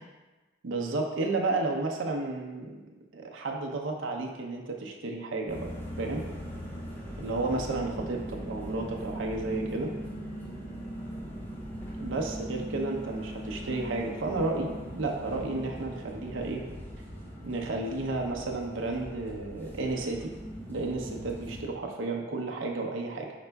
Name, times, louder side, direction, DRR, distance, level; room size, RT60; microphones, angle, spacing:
voice 1, 0.6-2.8 3.1-5.7 6.0-6.2 7.2-9.9 12.0-16.6 17.4-20.3 20.7-23.3, right 3 dB, 75° right, 0 dB, 0.6 m, -32 dB
sound 1, 5.5-21.6, equal, 10° left, 0.5 m, -40 dB
4.9 x 4.4 x 2.2 m, 1.2 s
head